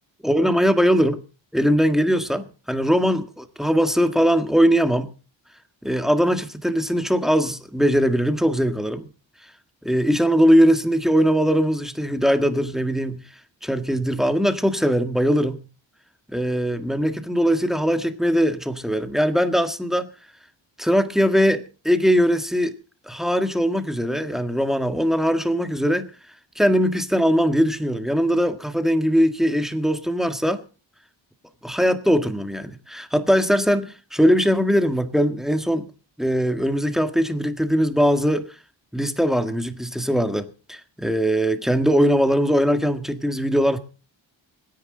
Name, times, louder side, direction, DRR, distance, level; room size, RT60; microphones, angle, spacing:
voice 1, 0.2-1.2 1.5-5.1 5.8-9.1 9.8-13.2 13.6-15.6 16.3-20.1 20.8-22.7 23.1-26.1 26.6-30.6 31.6-35.9 36.2-38.5 38.9-43.8, equal, ahead, 1.7 m, -20 dB
26.5 x 10.5 x 3.9 m
wide cardioid pair, 105°, 46 cm